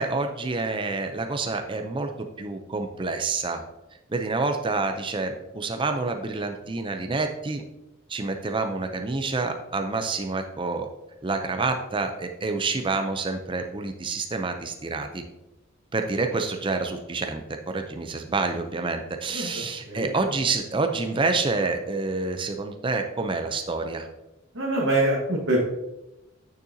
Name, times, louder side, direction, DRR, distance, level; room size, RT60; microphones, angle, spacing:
voice 1, 0.0-2.1 2.4-3.6 4.1-7.6 8.1-10.9 11.2-15.2 15.9-24.1, right 3 dB, 25° right, 5 dB, 0.5 m, -28 dB
voice 2, 24.5-25.6, right 1 dB, 70° right, -5 dB, 1.5 m, -24 dB
9.0 x 6.6 x 2.8 m, 0.95 s
head